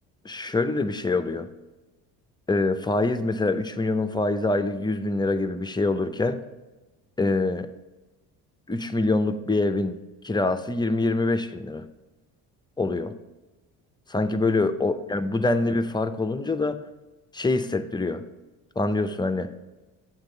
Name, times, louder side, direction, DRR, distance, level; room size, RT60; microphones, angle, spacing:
voice 1, 0.2-1.5 2.5-6.4 7.2-7.7 8.7-9.9 10.2-11.8 12.8-13.1 14.1-16.8 17.3-18.2 18.8-19.5, left 2 dB, 10° left, 8 dB, 0.5 m, -25 dB
8.0 x 3.9 x 5.5 m, 1.1 s
supercardioid pair, 75°, 41 cm